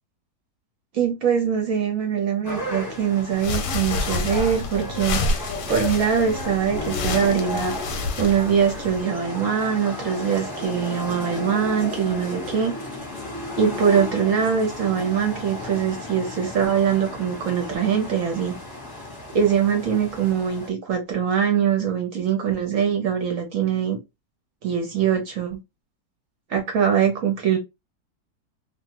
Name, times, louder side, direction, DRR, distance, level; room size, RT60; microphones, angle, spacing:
voice 1, 0.9-12.7 13.6-18.6 19.3-24.0 24.6-25.6 26.5-27.6, right 7 dB, 65° right, 0.9 m, -23 dB
sound 1, 2.4-20.7, left 2 dB, 15° left, 0.8 m, -34 dB
sound 2, 3.3-9.0, left 3 dB, 85° left, 1.2 m, -29 dB
2.6 x 2.4 x 2.8 m
omnidirectional pair, 1.8 m